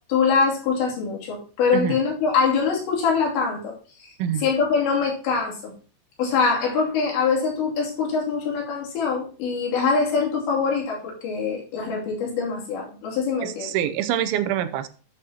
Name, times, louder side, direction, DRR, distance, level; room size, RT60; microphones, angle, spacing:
voice 1, 0.1-3.7 4.0-4.1 4.4-5.7 6.2-13.8, left 5 dB, 70° left, -3 dB, 5.0 m, -23 dB
voice 2, 13.4-14.9, right 10 dB, 90° right, 10 dB, 3.0 m, -25 dB
13.0 x 8.0 x 2.9 m, 0.39 s
omnidirectional pair, 5.4 m